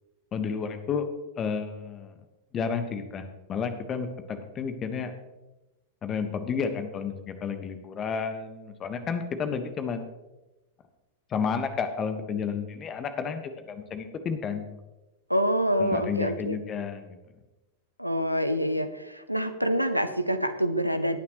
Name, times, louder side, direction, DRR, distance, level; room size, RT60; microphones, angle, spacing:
voice 1, 0.3-1.1 1.4-2.1 2.5-3.2 3.5-5.1 6.0-10.0 11.3-14.6 15.8-17.2, left 6 dB, 25° left, 8 dB, 1.3 m, -31 dB
voice 2, 15.3-16.6 18.0-21.2, equal, 90° right, 10 dB, 0.8 m, -26 dB
17.5 x 9.4 x 3.1 m, 1.1 s
figure-of-eight pair, 90°, 0 cm